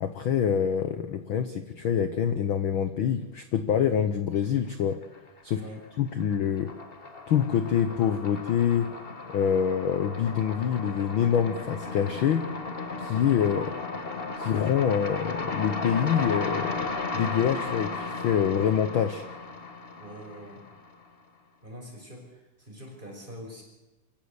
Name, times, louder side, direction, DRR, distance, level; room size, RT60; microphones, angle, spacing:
voice 1, 0.0-5.0 5.4-5.6 6.0-6.7 7.3-8.9 9.3-12.5 13.0-13.7 14.4-19.2, left 8 dB, 90° left, 11 dB, 1.1 m, -26 dB
sound 1, 4.8-5.5 5.8-21.0, left 3 dB, 55° left, 0.6 m, -35 dB
voice 2, 5.5-5.8 19.9-20.6 21.6-23.6, equal, 15° right, 0 dB, 5.7 m, -44 dB
27.0 x 15.0 x 8.2 m, 1.1 s
omnidirectional pair, 3.6 m